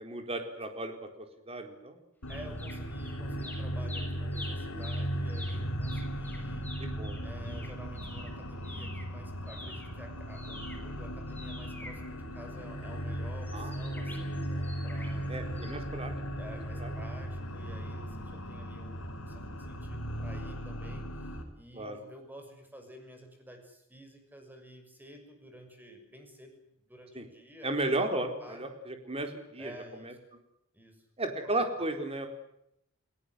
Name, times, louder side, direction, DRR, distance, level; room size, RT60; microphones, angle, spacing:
voice 1, 0.0-2.0 6.8-7.2 13.5-13.7 15.3-16.1 16.8-16.9 21.7-22.0 27.1-27.3 27.6-29.7 30.0-30.1 31.2-32.3, right 2 dB, 30° right, 5 dB, 4.3 m, -34 dB
sound 1, 2.2-21.4, equal, 75° left, 4.9 m, -37 dB
sound 2, 2.3-3.1 3.4-9.1 9.4-12.7 13.4-15.2 15.6-15.7, left 1 dB, 10° left, 6.8 m, -47 dB
voice 2, 2.3-6.7 7.2-15.3 16.4-27.8 28.4-28.7 29.6-30.2 30.7-31.6, equal, 10° right, 4 dB, 6.5 m, -51 dB
29.5 x 18.0 x 8.0 m, 0.78 s
head